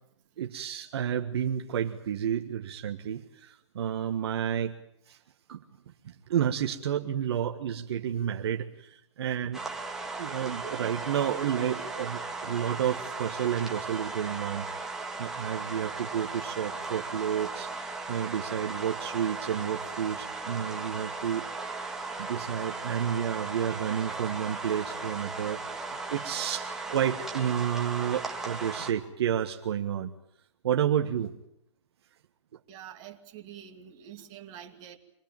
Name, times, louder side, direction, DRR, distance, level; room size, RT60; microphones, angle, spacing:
voice 1, 0.4-4.8 5.1-5.2 5.5-5.6 6.0-9.6 10.2-17.7 18.1-21.4 22.2-30.1 30.6-31.3, right 9 dB, 55° right, 4 dB, 1.5 m, -31 dB
sound 1, 9.5-28.9, right 3 dB, 5° right, 1.8 m, -37 dB
voice 2, 32.7-35.0, right 10 dB, 25° right, 2 dB, 2.5 m, -46 dB
26.0 x 20.5 x 9.0 m, 0.75 s
hypercardioid pair, 150°, 16 cm